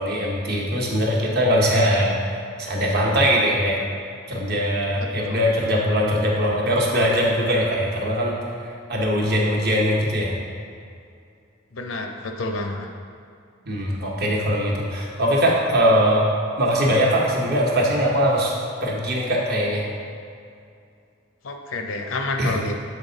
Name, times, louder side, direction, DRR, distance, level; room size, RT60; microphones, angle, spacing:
voice 1, 0.0-3.8 4.3-10.3 13.7-16.2 16.6-18.5 18.8-19.8 22.4-22.5, equal, 50° right, -2 dB, 1.0 m, -21 dB
voice 2, 5.0-5.4 11.7-12.9 21.4-22.8, left 2 dB, 70° left, 4 dB, 0.6 m, -29 dB
7.2 x 4.3 x 3.9 m, 2.4 s
head